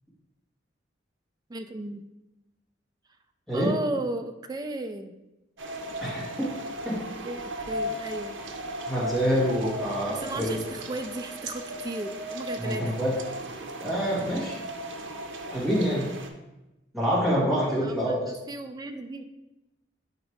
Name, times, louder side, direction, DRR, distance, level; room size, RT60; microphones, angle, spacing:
voice 1, 1.5-2.1 3.5-5.1 7.2-8.4 10.1-13.0 17.8-19.2, right 2 dB, 20° right, 7 dB, 0.3 m, -35 dB
sound 1, 5.6-16.3, right 1 dB, 80° right, 0.7 m, -36 dB
voice 2, 8.9-10.6 12.6-13.1 13.8-14.6 15.5-16.0 16.9-18.3, equal, ahead, -9 dB, 2.0 m, -26 dB
5.1 x 4.1 x 4.8 m, 0.98 s
head